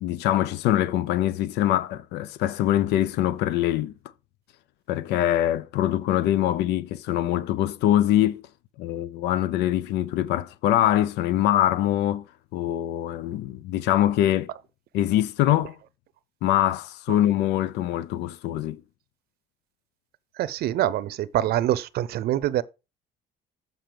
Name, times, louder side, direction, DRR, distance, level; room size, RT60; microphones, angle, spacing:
voice 1, 0.0-3.9 4.9-8.4 8.8-12.2 12.5-14.5 14.9-15.8 16.4-18.8, left 12 dB, 85° left, 0.6 m, -23 dB
voice 2, 20.4-22.6, right 13 dB, 65° right, 0.6 m, -25 dB
7.6 x 5.5 x 5.0 m
cardioid pair, 110°, 17 cm